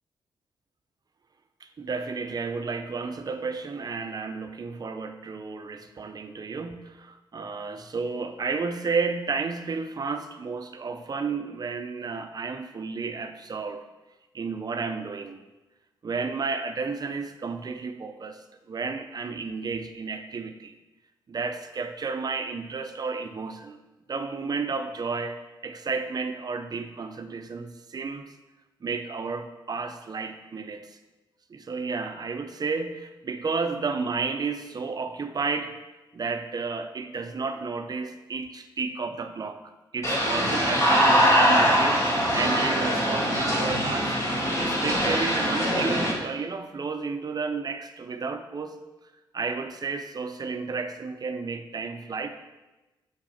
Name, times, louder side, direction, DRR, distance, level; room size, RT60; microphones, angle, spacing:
voice 1, 1.8-13.8 14.3-15.4 16.0-18.4 18.7-20.7 21.3-23.8 24.1-28.3 28.8-30.9 31.5-35.7 36.1-39.6 39.9-44.1 44.6-48.8 49.3-52.3, right 4 dB, 45° right, 7 dB, 0.6 m, -32 dB
sound 1, 40.0-46.1, equal, 35° left, 2.1 m, -22 dB
6.2 x 4.0 x 4.2 m, 1.1 s
cardioid pair, 60°, 9 cm